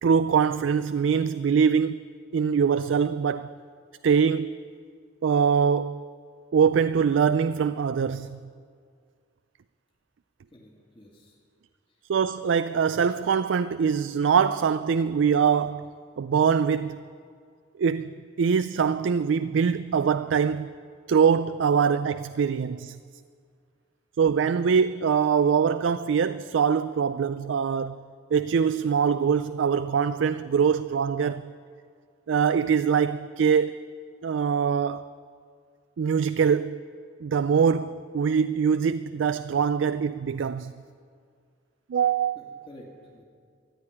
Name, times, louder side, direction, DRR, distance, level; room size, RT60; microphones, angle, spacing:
voice 1, 0.0-2.0 2.3-3.5 4.0-4.6 5.2-6.1 6.5-8.4 12.1-15.9 16.2-17.0 17.8-20.7 21.1-23.0 24.2-28.0 28.3-31.5 32.3-33.9 34.2-35.1 36.0-36.8 37.2-40.7 41.9-42.6, right 6 dB, 90° right, 0.4 m, -23 dB
voice 2, 10.5-11.3 42.4-43.2, left 1 dB, 30° left, 2.2 m, -50 dB
14.0 x 10.5 x 9.8 m
head